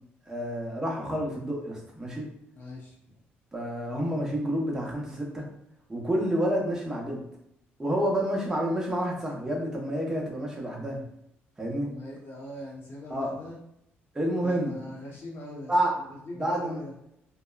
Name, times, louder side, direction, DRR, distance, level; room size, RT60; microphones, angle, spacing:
voice 1, 0.3-2.3 3.5-5.5 5.9-7.2 7.8-11.0 11.6-11.9 13.1-13.3 14.1-14.7 15.7-15.9 16.3-16.8, equal, 15° right, -2 dB, 0.8 m, -29 dB
voice 2, 2.5-2.9 11.8-13.6 14.4-15.7 16.0-16.9, left 1 dB, 60° left, -3 dB, 0.6 m, -41 dB
2.8 x 2.1 x 2.3 m, 0.76 s
cardioid pair, 90°, 4 cm